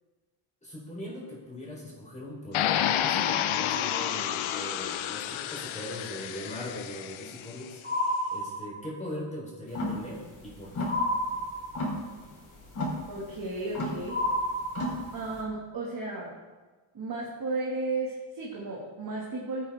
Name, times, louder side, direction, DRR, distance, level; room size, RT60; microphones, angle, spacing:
voice 1, 0.6-7.8 8.3-10.9, left 1 dB, 15° left, -4 dB, 3.9 m, -40 dB
sound 1, 2.5-7.5, left 10 dB, 75° left, 0.8 m, -30 dB
sound 2, 7.8-9.1 10.9-12.1 14.1-15.3, left 1 dB, 20° right, 3.6 m, -30 dB
sound 3, 9.7-15.4, left 1 dB, 40° left, 3.5 m, -35 dB
voice 2, 13.1-14.2 15.1-16.3 16.9-19.7, right 2 dB, 45° right, -4 dB, 2.2 m, -34 dB
14.0 x 8.8 x 3.6 m, 1.3 s
cardioid pair, 125°, 48 cm